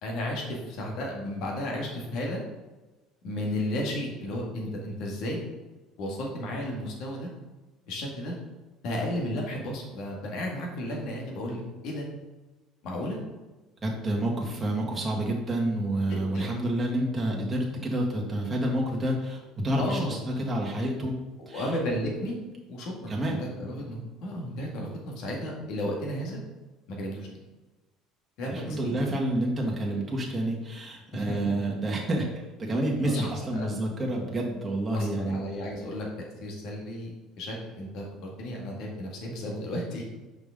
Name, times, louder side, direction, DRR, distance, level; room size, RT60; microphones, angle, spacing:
voice 1, 0.0-2.4 3.2-5.4 6.0-7.3 7.9-8.3 8.8-12.1 12.8-13.2 16.1-16.6 19.8-20.2 21.5-22.3 22.7-26.4 26.9-27.3 28.4-29.0 31.1-31.4 33.0-33.7 34.9-36.1 36.4-40.1, left 1 dB, 65° left, -1 dB, 2.0 m, -33 dB
voice 2, 13.8-21.1 21.5-21.7 23.1-23.4 28.4-32.3 32.6-35.3, right 1 dB, 20° right, -2 dB, 1.8 m, -29 dB
5.8 x 5.5 x 3.7 m, 1.1 s
supercardioid pair, 100°, 0 cm